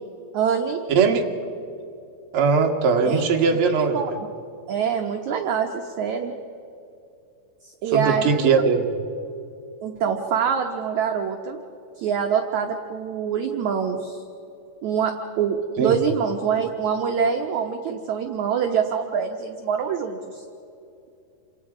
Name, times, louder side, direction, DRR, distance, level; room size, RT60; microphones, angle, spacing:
voice 1, 0.3-0.9 3.0-4.1 4.7-6.3 7.6-8.5 9.8-11.6 12.0-14.2 14.8-20.4, right 7 dB, 65° right, 3 dB, 1.9 m, -25 dB
voice 2, 0.9-1.2 2.3-4.0 7.9-8.9 15.8-16.0, right 5 dB, 45° right, 2 dB, 1.9 m, -20 dB
29.0 x 26.5 x 4.9 m, 2.7 s
omnidirectional pair, 4.6 m